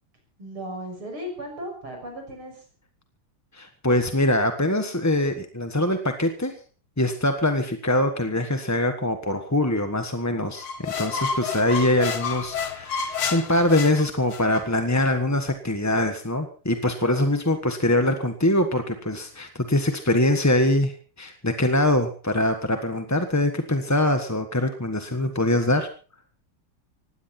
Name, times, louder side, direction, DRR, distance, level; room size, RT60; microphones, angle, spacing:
voice 1, 0.4-2.6, equal, 70° right, 3 dB, 7.3 m, -36 dB
voice 2, 3.5-6.5 7.0-25.9, left 1 dB, 10° left, 6 dB, 0.9 m, -23 dB
sound 1, 10.6-14.6, left 6 dB, 75° left, 2.7 m, -30 dB
19.5 x 16.0 x 4.3 m, 0.39 s
omnidirectional pair, 2.4 m